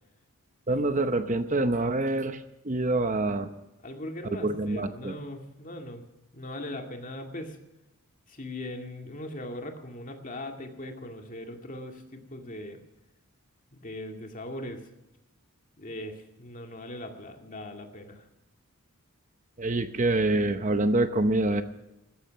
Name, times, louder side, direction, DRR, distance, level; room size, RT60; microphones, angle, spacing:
voice 1, 0.7-3.5 4.4-5.1 19.6-21.6, right 2 dB, 35° right, 10 dB, 0.8 m, -26 dB
voice 2, 3.8-6.0 6.3-7.6 8.3-12.8 13.7-14.9 15.8-18.3, left 1 dB, 35° left, 4 dB, 2.1 m, -40 dB
16.0 x 14.0 x 5.8 m, 0.94 s
head